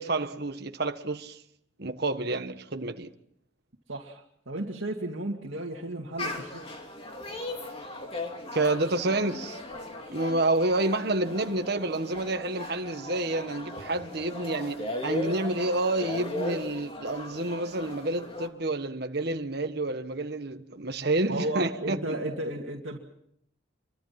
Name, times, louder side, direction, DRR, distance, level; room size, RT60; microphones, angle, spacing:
voice 1, 0.0-1.4 1.8-3.1 8.5-9.6 10.1-22.0, right 2 dB, 50° right, 1.5 m, -29 dB
voice 2, 3.9-6.6 21.3-23.0, right 1 dB, 70° right, 2.4 m, -34 dB
sound 1, 6.2-18.5, left 1 dB, 30° left, 2.9 m, -37 dB
28.0 x 24.0 x 5.9 m
head